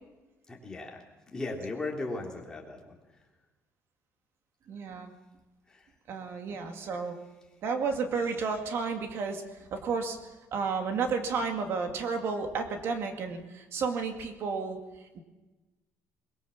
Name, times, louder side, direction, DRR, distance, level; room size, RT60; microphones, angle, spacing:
voice 1, 0.5-3.2 5.7-5.9, left 2 dB, 15° left, 0 dB, 3.5 m, -38 dB
voice 2, 4.7-5.1 6.1-7.1 7.6-10.2 10.5-14.8, right 5 dB, 50° right, 5 dB, 2.3 m, -32 dB
22.5 x 22.0 x 7.3 m, 1.1 s
cardioid pair, 160°, 5 cm